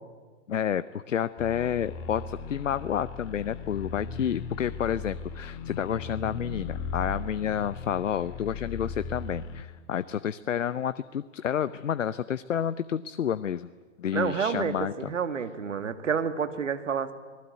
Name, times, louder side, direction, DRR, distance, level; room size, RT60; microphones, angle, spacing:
voice 1, 0.5-13.7 14.0-14.9, left 9 dB, 80° left, 16 dB, 0.8 m, -30 dB
sound 1, 1.4-9.6, left 5 dB, 35° left, 2.0 m, -37 dB
voice 2, 14.1-17.1, right 6 dB, 75° right, 10 dB, 2.0 m, -29 dB
27.5 x 19.0 x 9.3 m, 1.5 s
hypercardioid pair, 115°, 38 cm